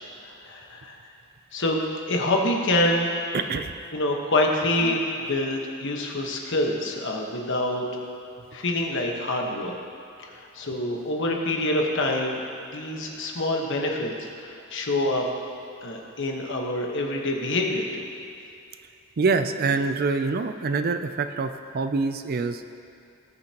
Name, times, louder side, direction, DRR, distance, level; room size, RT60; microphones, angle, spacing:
voice 1, 0.2-1.0 1.5-1.8 2.1-3.1 3.9-8.0 8.5-9.8 10.2-12.4 12.7-15.2 15.8-18.0, left 1 dB, 60° left, 1 dB, 1.3 m, -26 dB
voice 2, 3.3-3.7 4.8-5.0 19.2-22.6, right 4 dB, 45° right, 9 dB, 0.4 m, -25 dB
19.0 x 6.7 x 2.9 m, 2.6 s
head